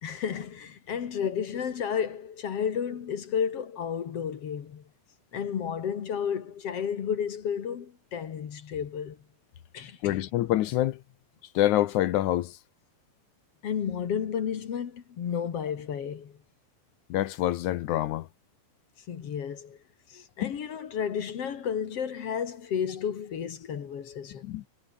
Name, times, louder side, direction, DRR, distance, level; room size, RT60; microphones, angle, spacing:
voice 1, 0.0-4.8 5.3-9.2 9.7-10.2 13.6-16.3 19.1-19.8 20.1-24.6, left 8 dB, 50° left, 2.3 m, -32 dB
voice 2, 10.0-11.0 11.5-12.6 17.1-18.3 20.4-20.5 24.4-24.6, left 14 dB, 75° left, 1.9 m, -26 dB
omnidirectional pair, 4.3 m